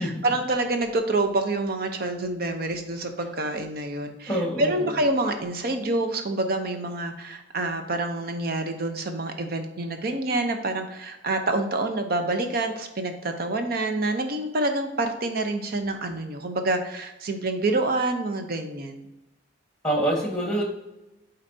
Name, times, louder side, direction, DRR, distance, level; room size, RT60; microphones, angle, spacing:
voice 1, 0.0-19.0, right 2 dB, 55° right, 6 dB, 0.7 m, -27 dB
voice 2, 4.3-4.9 19.8-20.6, right 1 dB, 5° left, -1 dB, 1.5 m, -25 dB
8.7 x 4.1 x 2.7 m, 0.95 s
head